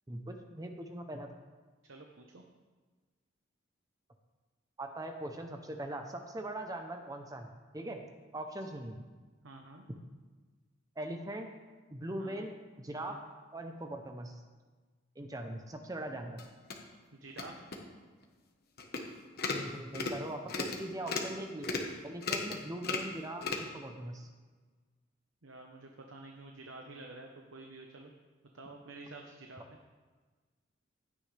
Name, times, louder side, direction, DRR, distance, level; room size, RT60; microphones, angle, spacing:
voice 1, 0.1-1.3 4.8-8.0 8.3-9.0 11.0-11.5 11.9-13.2 13.5-14.4 15.2-16.4 19.5-21.8 22.0-24.3, right 1 dB, 20° right, 5 dB, 0.7 m, -41 dB
voice 2, 1.8-2.4 9.4-9.9 12.2-12.5 13.1-13.3 17.1-17.6 25.4-28.1 28.5-29.6, right 2 dB, 85° right, 2 dB, 1.0 m, -49 dB
sound 1, 16.4-16.7 17.3-17.4 17.7-17.8 18.2-18.3 18.8-19.0 19.3-19.6 19.9-20.2 20.5-20.8 21.1-21.3 21.6-21.9 22.2-22.6 22.8-23.1 23.4-23.6, left 4 dB, 55° left, 1.3 m, -35 dB
15.5 x 9.6 x 3.4 m, 1.4 s
head